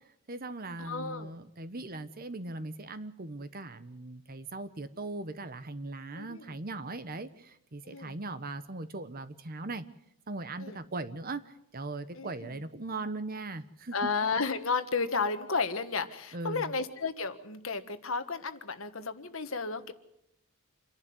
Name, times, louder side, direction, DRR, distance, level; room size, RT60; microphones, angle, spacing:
voice 1, 0.3-9.8 10.3-14.1 16.3-16.7, right 2 dB, 45° right, 12 dB, 1.1 m, -39 dB
voice 2, 0.8-1.3 6.1-6.4 7.8-8.2 10.6-10.8 12.1-12.5 13.9-19.9, left 4 dB, 65° left, 10 dB, 1.5 m, -33 dB
27.5 x 11.5 x 9.5 m, 0.79 s
head